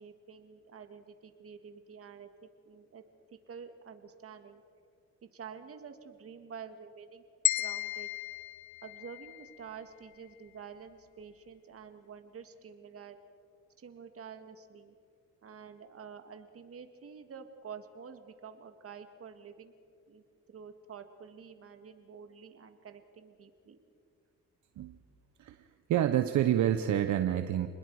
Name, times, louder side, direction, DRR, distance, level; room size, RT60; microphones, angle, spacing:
voice 1, 0.0-2.3 2.7-3.0 3.5-4.6 5.2-7.2 7.6-8.1 8.8-13.2 13.8-14.9 15.4-19.7 20.1-20.2 20.5-23.8, right 6 dB, 50° right, 7 dB, 2.0 m, -48 dB
sound 1, 7.4-9.6, left 14 dB, 70° left, 0.8 m, -34 dB
voice 2, 25.9-27.7, right 11 dB, 70° right, 9 dB, 0.9 m, -28 dB
29.0 x 21.0 x 4.8 m, 2.5 s
cardioid pair, 90°, 30 cm